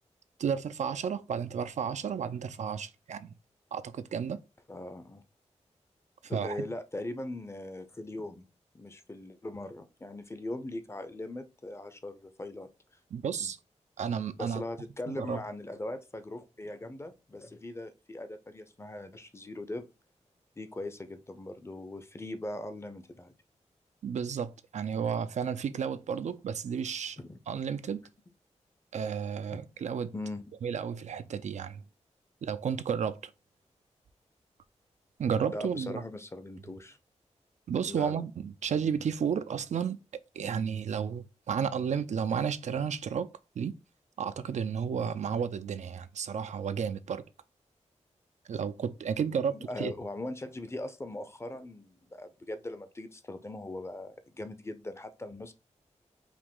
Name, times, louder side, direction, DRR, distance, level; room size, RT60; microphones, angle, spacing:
voice 1, 0.4-3.3 3.7-4.4 6.2-6.7 13.1-13.6 14.0-14.6 15.1-15.4 24.0-27.2 27.5-28.0 28.9-30.1 30.6-31.8 32.4-33.3 35.2-36.0 37.7-40.0 40.3-43.3 43.6-43.7 44.2-47.2 48.5-49.9, right 7 dB, 70° right, 0.4 m, -32 dB
voice 2, 4.7-5.2 6.3-8.4 8.7-12.7 13.4-13.5 14.4-19.9 20.6-23.3 27.2-27.4 29.5-29.6 30.1-30.4 35.5-37.0 37.9-38.2 49.5-55.5, left 1 dB, 20° left, 0.6 m, -40 dB
4.9 x 2.6 x 3.6 m
wide cardioid pair, 100°, 12 cm